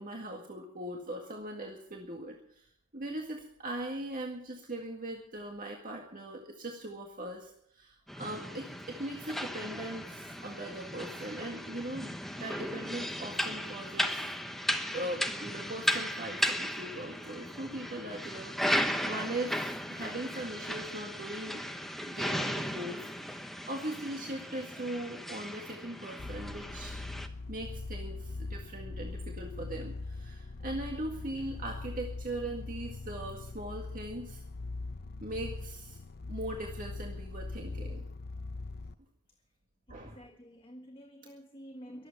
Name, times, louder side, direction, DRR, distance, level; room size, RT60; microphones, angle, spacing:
voice 1, 0.0-2.7 2.9-7.5 7.8-14.3 14.9-21.7 22.0-27.0 27.5-34.4 35.2-36.0 36.3-38.0 39.9-40.2, right 1 dB, 40° right, 1 dB, 2.0 m, -40 dB
sound 1, 8.1-27.3, equal, ahead, 1.0 m, -36 dB
sound 2, 26.2-38.9, left 3 dB, 45° left, 0.7 m, -41 dB
voice 2, 39.9-42.1, equal, 25° left, 3 dB, 1.5 m, -51 dB
23.0 x 8.5 x 6.8 m, 0.69 s
head